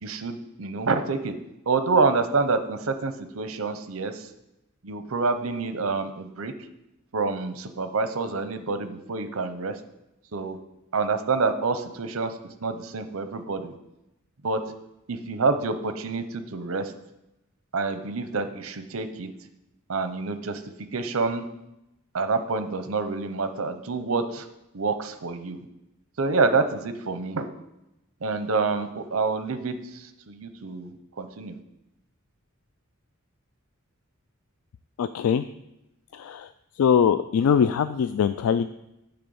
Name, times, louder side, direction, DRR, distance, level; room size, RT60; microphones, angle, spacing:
voice 1, 0.0-1.3 1.7-4.3 4.8-6.5 7.1-9.8 10.3-10.6 10.9-12.3 12.6-13.7 14.4-14.6 15.1-16.9 17.7-19.3 19.9-20.6 20.9-21.5 22.1-24.5 24.7-25.7 26.2-27.5 28.2-30.9 31.2-31.6, right 4 dB, 70° right, 10 dB, 0.8 m, -27 dB
voice 2, 35.0-35.4 36.3-36.4 36.8-38.7, left 7 dB, 85° left, 11 dB, 0.3 m, -22 dB
10.0 x 3.4 x 7.0 m, 0.89 s
head